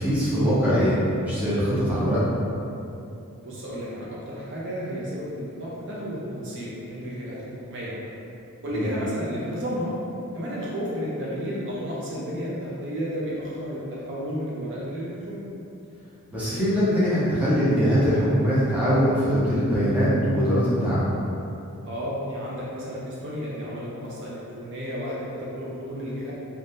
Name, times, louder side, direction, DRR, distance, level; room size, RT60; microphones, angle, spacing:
voice 1, 0.0-2.2 8.7-8.9 16.3-21.0, equal, 5° right, -11 dB, 0.7 m, -22 dB
voice 2, 3.3-7.4 7.6-8.1 8.6-9.9 10.3-15.4 21.8-26.3, equal, 55° right, -6 dB, 0.6 m, -32 dB
2.6 x 2.3 x 3.4 m, 2.7 s
head